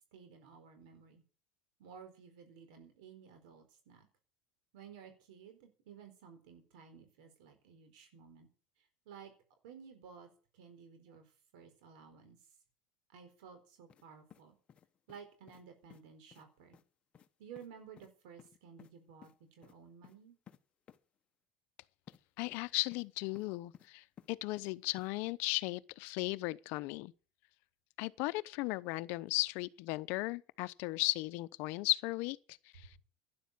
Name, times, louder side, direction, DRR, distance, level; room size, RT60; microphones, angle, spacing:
voice 1, 0.1-1.2 1.8-4.1 4.7-8.5 8.8-9.3 9.6-12.5 13.1-14.6 15.1-16.8 17.4-20.4, right 7 dB, 75° right, 4.4 m, -55 dB
sound 1, 13.9-14.1 14.3-15.2 15.5-15.6 15.9-16.0 16.3-16.5 16.7-16.9 17.1-17.3 17.6-17.7 18.0-18.1 18.4-18.9 19.2-19.4 19.6-19.8 20.0-20.2 20.5-20.6 20.9-21.0 22.1-22.2 22.5-23.1 23.4-23.9 24.2-24.7 25.0-25.1, left 8 dB, 30° left, 1.1 m, -57 dB
voice 2, 22.4-27.1 28.0-32.4 32.7-32.9, left 22 dB, 60° left, 0.8 m, -36 dB
12.0 x 10.5 x 8.6 m
supercardioid pair, 145°, 4 cm